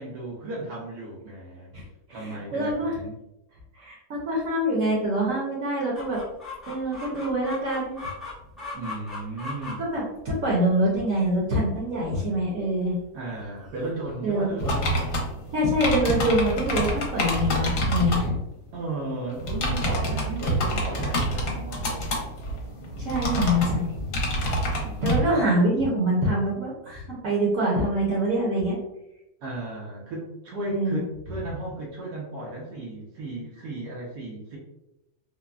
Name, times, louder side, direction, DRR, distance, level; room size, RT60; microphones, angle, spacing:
voice 1, 0.0-1.7 2.1-3.2 8.7-9.9 13.1-15.4 18.7-22.1 24.8-25.5 29.4-34.6, right 2 dB, 85° right, -5 dB, 1.3 m, -35 dB
voice 2, 2.1-2.9 3.8-6.2 6.7-8.0 9.8-13.0 14.2-14.5 15.5-18.3 23.0-24.1 25.0-28.8 30.7-31.0, equal, 60° right, -5 dB, 1.1 m, -25 dB
Chicken rooster, 5.9-17.0, left 2 dB, ahead, 0.3 m, -42 dB
sound 1, 14.6-18.3 19.3-25.2, equal, 65° left, 1.0 m, -27 dB
3.6 x 2.0 x 2.3 m, 0.88 s
omnidirectional pair, 1.7 m